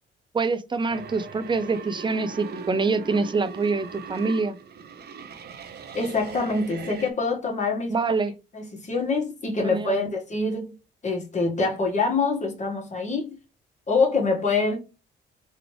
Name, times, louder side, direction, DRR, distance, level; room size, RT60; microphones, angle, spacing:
voice 1, 0.3-4.6 7.9-8.3 9.6-10.1, right 4 dB, 25° right, 0.5 m, -25 dB
sound 1, 0.9-7.1, right 6 dB, 55° right, 0.8 m, -40 dB
voice 2, 5.9-7.9 8.5-10.7 11.0-13.3 13.9-14.8, left 3 dB, 35° left, 1.7 m, -25 dB
3.9 x 3.2 x 3.2 m
cardioid pair, 90°, 20 cm